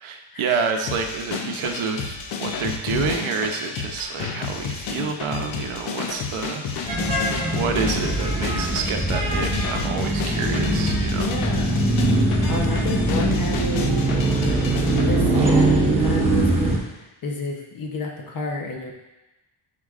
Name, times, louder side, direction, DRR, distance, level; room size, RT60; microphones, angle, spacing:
voice 1, 0.0-6.6 7.5-11.3, right 5 dB, 75° right, 4 dB, 0.8 m, -28 dB
sound 1, 0.9-15.1, left 5 dB, 70° left, 0.8 m, -31 dB
sound 2, 6.9-16.8, right 2 dB, 10° right, 1.1 m, -22 dB
voice 2, 11.1-11.9 12.5-18.9, left 3 dB, 45° left, 1 dB, 0.9 m, -31 dB
9.7 x 4.5 x 2.5 m, 1.0 s
wide cardioid pair, 165°, 49 cm